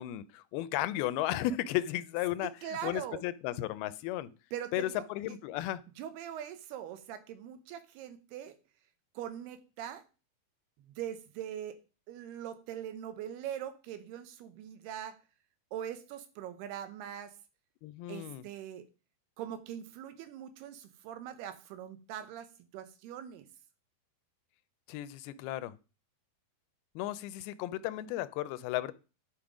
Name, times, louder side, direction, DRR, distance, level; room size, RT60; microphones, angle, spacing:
voice 1, 0.0-4.3 4.7-5.8 17.8-18.4 24.9-25.7 27.0-28.9, left 13 dB, 85° left, 15 dB, 2.5 m, -34 dB
voice 2, 2.4-3.2 4.5-5.1 6.0-8.5 9.2-10.0 10.9-11.8 12.1-15.2 15.7-17.4 18.1-18.9 19.4-23.5, right 10 dB, 90° right, 11 dB, 3.0 m, -42 dB
10.5 x 5.7 x 4.9 m, 0.33 s
omnidirectional pair, 4.5 m